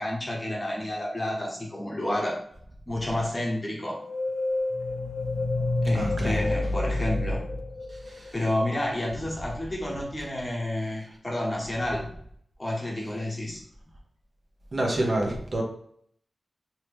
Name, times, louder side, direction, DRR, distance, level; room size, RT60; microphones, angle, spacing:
voice 1, 0.0-2.4 2.9-4.0 5.8-7.4 8.3-12.1 12.6-13.6, left 1 dB, 30° left, -3 dB, 1.1 m, -30 dB
sound 1, 3.8-8.5, left 2 dB, 70° left, 0.4 m, -29 dB
voice 2, 5.9-6.3 8.1-8.3 14.7-15.6, right 1 dB, 45° right, 0 dB, 0.8 m, -28 dB
2.9 x 2.8 x 3.4 m, 0.64 s
wide cardioid pair, 110°, 0 cm